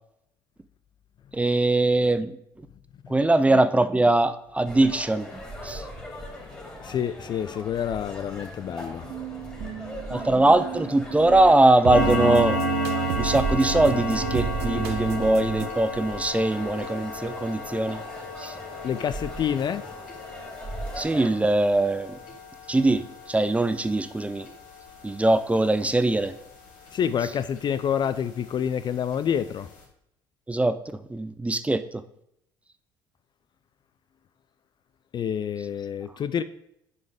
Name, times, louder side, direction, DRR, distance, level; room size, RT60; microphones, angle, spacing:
voice 1, 1.3-2.4 3.1-5.3 5.6-5.8 10.1-12.6 13.2-18.0 18.4-18.5 21.0-22.2 22.7-24.5 25.0-26.3 30.5-30.8 31.1-31.8, right 2 dB, 10° right, 11 dB, 0.6 m, -21 dB
sound 1, 4.6-21.3, right 1 dB, 10° left, 2.7 m, -38 dB
voice 2, 6.8-9.9 18.8-19.9 26.9-29.7 35.1-36.4, left 8 dB, 40° left, 13 dB, 0.4 m, -28 dB
sound 2, 9.0-15.7, right 12 dB, 60° right, 0.6 m, -32 dB
sound 3, 11.9-27.0 27.3-27.6 28.0-28.1 28.6-28.7 29.1-29.2 29.5-29.7, left 2 dB, 70° left, 2.4 m, -33 dB
9.3 x 5.3 x 3.5 m, 0.77 s
hypercardioid pair, 60°, 12 cm